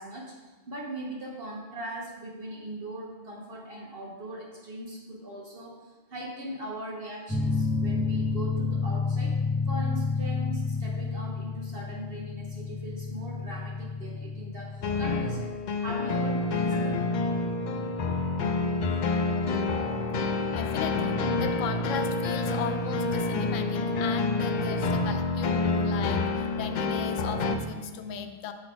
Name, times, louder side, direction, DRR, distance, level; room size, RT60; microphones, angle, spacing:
voice 1, 0.0-9.4 9.7-15.5 15.8-17.0, right 1 dB, 55° right, -1 dB, 0.9 m, -39 dB
sound 1, 7.3-18.5, left 4 dB, 10° left, 0.5 m, -31 dB
sound 2, 14.8-27.6, left 3 dB, 60° left, 0.4 m, -28 dB
voice 2, 20.5-28.5, left 7 dB, 90° left, 8 dB, 0.9 m, -37 dB
6.5 x 4.0 x 4.8 m, 1.3 s
omnidirectional pair, 1.3 m